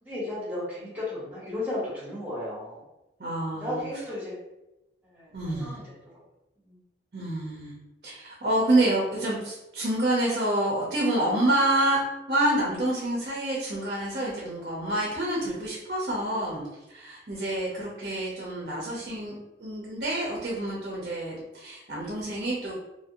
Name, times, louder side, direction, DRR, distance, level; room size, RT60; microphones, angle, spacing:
voice 1, 0.0-2.8 3.6-4.3 5.1-5.8 6.7-6.8 19.0-19.1, left 1 dB, 10° right, -10 dB, 1.3 m, -34 dB
voice 2, 3.2-3.8 5.3-5.8 7.1-7.7 8.0-12.0 12.3-22.8, right 1 dB, 50° right, -4 dB, 0.7 m, -28 dB
2.7 x 2.6 x 2.8 m, 0.95 s
head